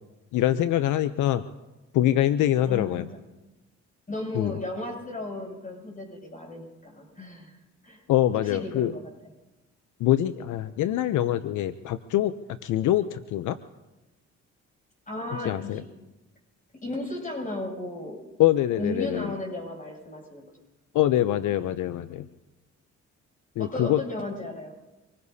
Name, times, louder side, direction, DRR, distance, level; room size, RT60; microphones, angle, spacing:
voice 1, 0.3-1.4 1.9-3.1 4.3-4.5 8.1-8.9 10.0-12.3 12.6-13.6 15.4-15.8 18.4-19.3 20.9-22.3 23.6-24.0, left 13 dB, 80° left, 12 dB, 0.6 m, -24 dB
voice 2, 2.6-3.0 4.1-7.6 7.8-8.0 8.4-9.0 15.1-15.9 16.8-18.2 18.8-20.5 23.6-24.8, left 2 dB, 25° left, -1 dB, 7.5 m, -35 dB
25.5 x 20.5 x 2.8 m, 1.0 s
cardioid pair, 90°, 30 cm